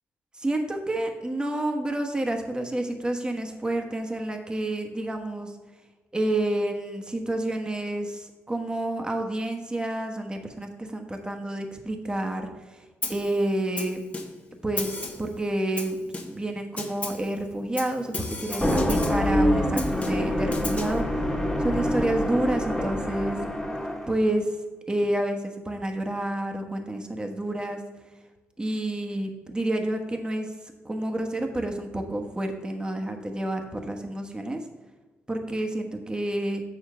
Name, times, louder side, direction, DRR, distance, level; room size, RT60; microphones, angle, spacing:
voice 1, 0.4-5.5 6.1-12.8 13.1-14.0 14.6-16.0 16.2-21.0 21.6-23.4 24.1-24.5 24.9-27.8 28.6-30.5 30.8-34.6 35.3-36.6, right 1 dB, 15° right, 4 dB, 1.2 m, -29 dB
Snare drum, 13.0-13.3 13.8-14.5 14.8-15.3 15.8-16.5 16.8-17.3 17.8-19.3 19.8-21.0, left 3 dB, 25° left, 1.2 m, -35 dB
sound 1, 18.5-24.1, equal, 5° left, 1.5 m, -26 dB
7.7 x 6.8 x 3.7 m, 1.2 s
cardioid pair, 85°, 5 cm